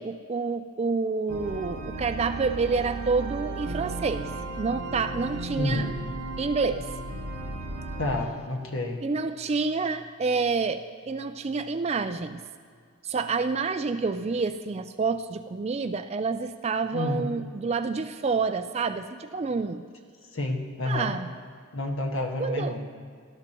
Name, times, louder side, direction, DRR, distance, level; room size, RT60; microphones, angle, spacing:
voice 1, 0.0-4.3 4.6-5.9 6.4-6.9 9.0-12.4 13.0-19.8 20.8-21.3 22.4-22.7, right 4 dB, 30° right, 10 dB, 0.3 m, -28 dB
sound 1, 1.3-8.3, right 3 dB, 90° right, 1.8 m, -35 dB
voice 2, 5.5-5.9 8.0-9.0 16.9-17.3 20.3-21.1 21.7-22.8, left 2 dB, 60° left, 2 dB, 1.5 m, -29 dB
19.0 x 11.5 x 3.0 m, 2.1 s
head